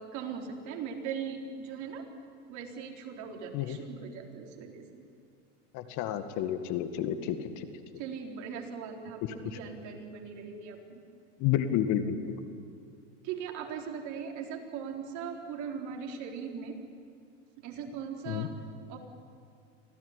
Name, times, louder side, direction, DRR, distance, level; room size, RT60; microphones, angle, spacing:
voice 1, 0.0-2.0 2.5-5.0 8.0-11.0 13.2-16.8 17.6-18.5 18.9-19.0, right 6 dB, 50° right, 2 dB, 4.2 m, -39 dB
voice 2, 5.7-7.7 9.5-9.6 11.4-12.2 18.3-18.5, left 10 dB, 50° left, 10 dB, 2.1 m, -30 dB
25.5 x 17.0 x 10.0 m, 2.4 s
supercardioid pair, 120°, 37 cm